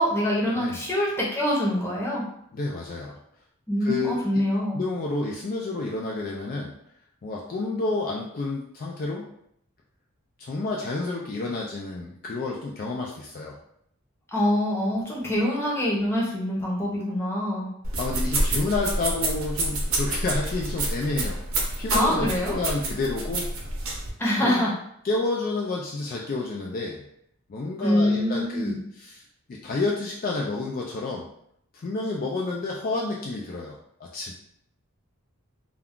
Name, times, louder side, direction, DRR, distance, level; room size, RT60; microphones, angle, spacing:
voice 1, 0.0-2.2 3.7-4.8 14.3-17.7 21.9-22.6 24.2-24.7 27.8-28.8, left 1 dB, 10° left, -5 dB, 0.7 m, -24 dB
voice 2, 2.5-3.2 3.8-4.2 4.7-6.7 7.2-9.3 10.4-13.6 18.0-21.4 21.8-23.5 24.4-24.5 25.0-27.0 27.5-29.2 29.5-31.3 31.7-34.4, left 3 dB, 40° left, -2 dB, 0.3 m, -30 dB
sound 1, 17.8-24.1, right 2 dB, 70° right, 0.7 m, -28 dB
2.3 x 2.2 x 3.6 m, 0.72 s
head